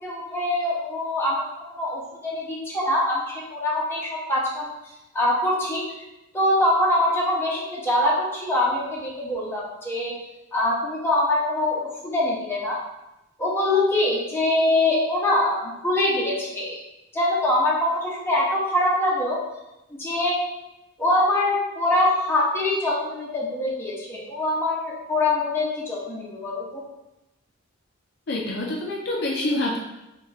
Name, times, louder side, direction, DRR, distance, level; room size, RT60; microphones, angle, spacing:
voice 1, 0.0-1.5 1.8-4.7 5.1-5.8 6.3-10.1 10.5-12.8 13.4-16.8 17.1-19.4 19.9-20.4 21.0-26.8, left 1 dB, 10° left, -6 dB, 0.6 m, -23 dB
voice 2, 28.3-29.8, left 1 dB, 50° left, -2 dB, 0.4 m, -26 dB
3.0 x 2.2 x 3.8 m, 0.94 s
head